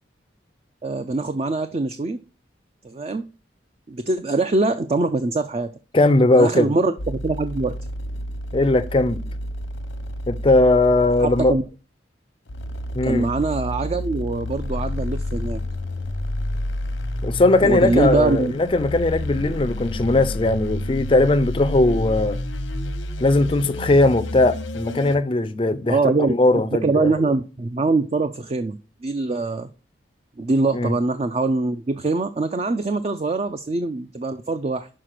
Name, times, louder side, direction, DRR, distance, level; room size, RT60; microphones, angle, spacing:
voice 1, 0.8-2.2 2.8-3.3 3.9-5.7 6.3-7.8 11.2-11.6 13.0-15.6 17.6-18.5 25.9-28.8 29.0-29.7 30.4-34.9, right 3 dB, 35° right, 0.4 m, -23 dB
voice 2, 5.9-6.7 8.5-9.2 10.3-11.6 12.9-13.3 17.2-22.4 23.2-27.1 30.7-30.9, left 2 dB, 25° left, 0.4 m, -19 dB
sound 1, 7.0-11.6 12.5-25.2, left 1 dB, 90° left, 0.9 m, -30 dB
6.4 x 5.0 x 5.9 m
head